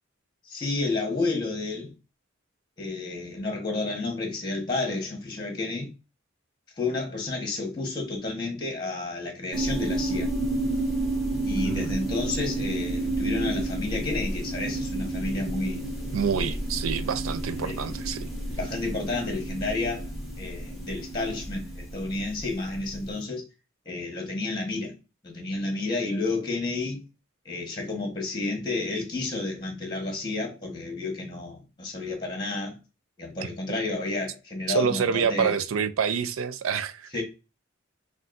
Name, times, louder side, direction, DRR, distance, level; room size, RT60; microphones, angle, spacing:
voice 1, 0.5-1.9 2.8-5.9 6.8-10.3 11.4-15.8 16.4-16.5 17.6-17.7 18.5-20.1 20.4-23.4 23.8-24.9 25.2-27.0 27.4-32.8 33.2-35.5 37.1-37.2, left 3 dB, 20° left, 1.2 m, -31 dB
sound 1, 9.5-22.9, right 2 dB, ahead, 1.2 m, -31 dB
voice 2, 11.5-12.0 16.1-18.3 34.7-37.1, right 6 dB, 85° right, 0.4 m, -27 dB
5.6 x 2.5 x 2.5 m
head